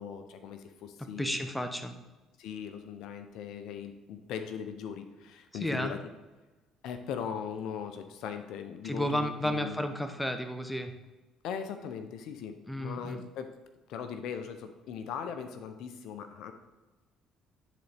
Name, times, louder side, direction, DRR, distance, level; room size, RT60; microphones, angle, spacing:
voice 1, 0.0-1.4 2.4-6.0 6.8-9.8 11.4-13.5 13.9-16.5, left 7 dB, 70° left, 8 dB, 0.6 m, -39 dB
voice 2, 1.2-1.9 5.6-6.0 8.8-10.9 12.7-13.2, equal, 5° left, 7 dB, 0.8 m, -32 dB
10.5 x 4.1 x 3.4 m, 1.2 s
supercardioid pair, 70°, 0 cm